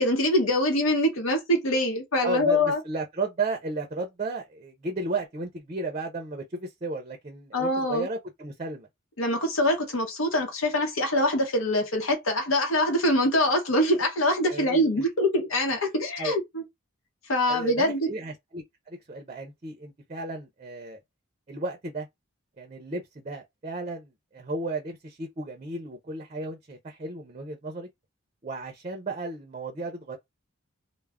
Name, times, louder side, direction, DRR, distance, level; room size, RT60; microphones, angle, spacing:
voice 1, 0.0-2.8 7.5-8.1 9.2-16.6 17.3-18.1, left 1 dB, 85° left, 0.8 m, -24 dB
voice 2, 2.2-8.9 14.5-14.9 16.2-16.3 17.5-21.0 21.5-22.1 22.6-27.9 28.4-30.2, right 3 dB, 35° right, 0.4 m, -34 dB
2.3 x 2.0 x 3.4 m
head